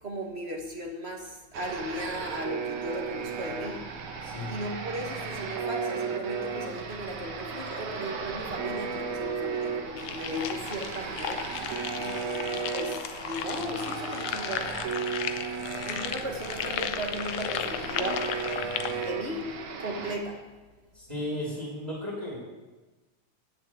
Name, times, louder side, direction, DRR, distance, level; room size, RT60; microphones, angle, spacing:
voice 1, 0.0-3.9 4.5-14.8 15.8-20.5, equal, 30° right, 1 dB, 1.2 m, -37 dB
sound 1, 1.5-20.2, right 5 dB, 75° right, 2.8 m, -35 dB
voice 2, 4.2-4.5 20.9-22.4, left 1 dB, 10° right, -7 dB, 4.3 m, -35 dB
sound 2, 10.0-19.1, left 10 dB, 80° left, 2.0 m, -35 dB
17.5 x 6.8 x 8.4 m, 1.2 s
omnidirectional pair, 3.3 m